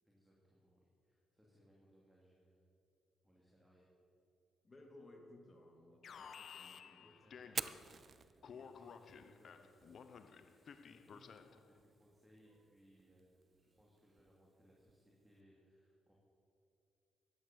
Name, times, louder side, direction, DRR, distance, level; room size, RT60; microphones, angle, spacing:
voice 1, 0.0-2.7 3.2-3.9 7.0-16.2, equal, 10° right, -4 dB, 2.9 m, -68 dB
voice 2, 4.6-7.8 8.2-8.3 8.7-8.9, left 1 dB, 25° left, 2 dB, 2.7 m, -61 dB
Alarm, 6.0-8.0 8.4-11.7, left 6 dB, 55° left, 0.7 m, -55 dB
Fire, 7.4-15.4, right 5 dB, 40° right, 0.5 m, -52 dB
15.0 x 10.5 x 7.0 m, 2.7 s
cardioid pair, 90°, 0 cm